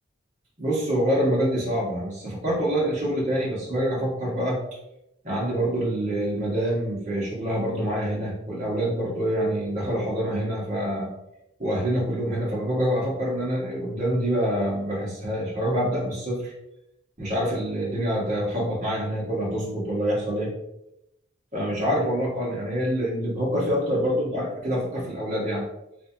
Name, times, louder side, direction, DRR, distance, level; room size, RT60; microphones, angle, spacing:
voice 1, 0.6-4.6 5.2-11.1 11.6-16.5 17.2-20.5 21.5-25.6, equal, 40° right, -6 dB, 1.4 m, -26 dB
3.3 x 3.3 x 2.7 m, 0.85 s
head